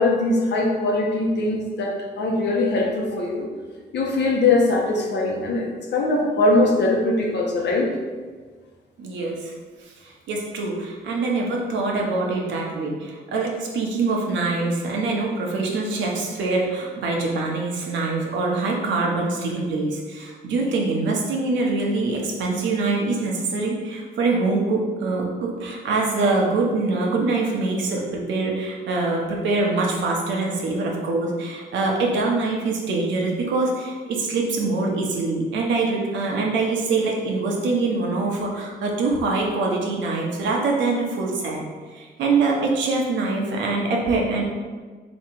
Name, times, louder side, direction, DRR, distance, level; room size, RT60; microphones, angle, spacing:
voice 1, 0.0-3.5 3.9-7.9, left 2 dB, 70° left, 0 dB, 0.9 m, -21 dB
voice 2, 9.0-9.5 9.8-41.6 41.9-44.4, right 3 dB, 85° right, -1 dB, 0.9 m, -24 dB
3.7 x 3.1 x 4.6 m, 1.5 s
cardioid pair, 85°, 19 cm